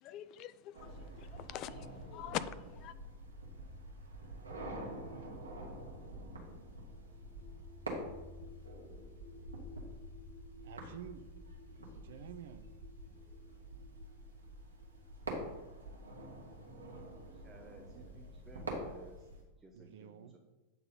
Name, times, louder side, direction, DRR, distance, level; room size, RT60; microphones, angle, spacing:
voice 1, 0.0-2.9, left 11 dB, 40° left, 0.4 m, -43 dB
sound 1, 0.7-19.4, right 1 dB, 75° right, 1.8 m, -47 dB
voice 2, 4.2-5.3 10.6-11.3 11.6-12.7 19.7-20.4, right 9 dB, 55° right, 0.5 m, -52 dB
sound 2, 6.1-17.9, left 4 dB, 15° left, 1.6 m, -58 dB
voice 3, 17.3-19.3 19.6-20.4, right 2 dB, 15° right, 0.8 m, -57 dB
8.6 x 3.9 x 5.5 m
figure-of-eight pair, 90°, 0 cm